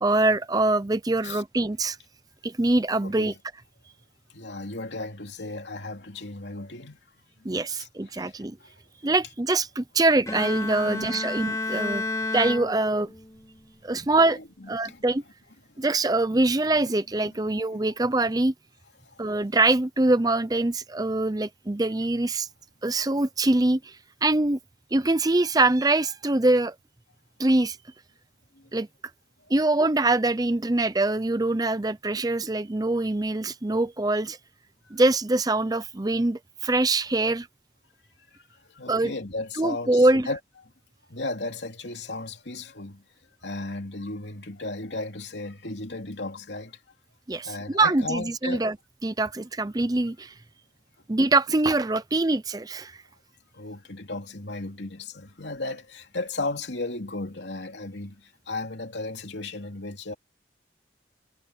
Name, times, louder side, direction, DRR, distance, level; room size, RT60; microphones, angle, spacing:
voice 1, 0.0-2.0 2.4-3.3 7.4-8.6 9.0-12.0 12.3-13.1 13.8-14.4 14.7-15.2 15.8-18.5 19.2-22.5 22.8-24.0 24.2-24.6 24.9-26.8 27.4-27.8 28.7-28.9 29.5-34.4 34.9-37.5 38.9-39.1 39.6-40.3 47.3-48.8 49.0-50.3 51.1-52.9, right 2 dB, 20° right, 0.6 m, -24 dB
voice 2, 3.0-3.4 4.3-7.0 7.8-8.7 10.9-11.2 13.9-15.0 15.7-15.8 17.2-17.8 19.0-19.2 28.5-28.7 34.8-35.0 38.5-40.4 41.1-43.0 43.4-46.8 47.4-48.7 53.5-60.1, left 2 dB, 70° left, 2.9 m, -35 dB
Bowed string instrument, 10.3-13.4, left 3 dB, 15° left, 3.3 m, -31 dB
head